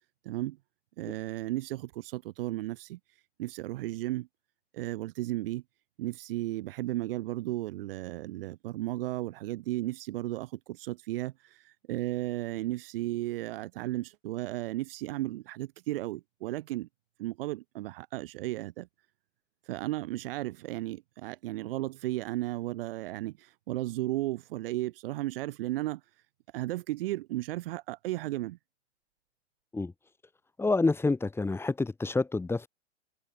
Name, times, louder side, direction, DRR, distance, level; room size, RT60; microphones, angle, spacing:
voice 1, 0.2-0.6 1.0-3.0 3.4-4.3 4.7-5.6 6.0-16.9 17.2-18.9 19.7-26.0 26.5-28.6, right 17 dB, 50° right, 5.8 m, -34 dB
voice 2, 30.6-32.7, left 3 dB, 5° left, 7.0 m, -28 dB
hypercardioid pair, 130°, 36 cm